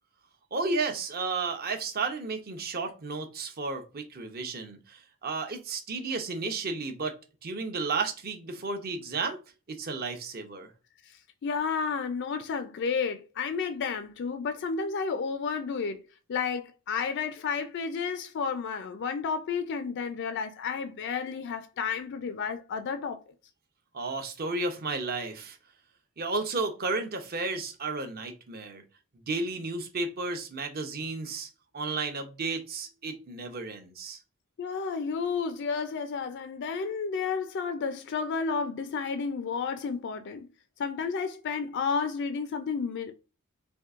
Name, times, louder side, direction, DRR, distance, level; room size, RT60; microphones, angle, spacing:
voice 1, 0.5-7.2 7.4-9.4 9.7-10.7 23.9-25.6 26.2-28.8 29.3-31.5 31.7-34.2, right 3 dB, 45° right, 0.7 m, -33 dB
voice 2, 11.0-16.0 16.3-23.2 34.6-40.5 40.8-43.1, left 5 dB, 50° left, 0.4 m, -31 dB
4.5 x 2.6 x 2.4 m
head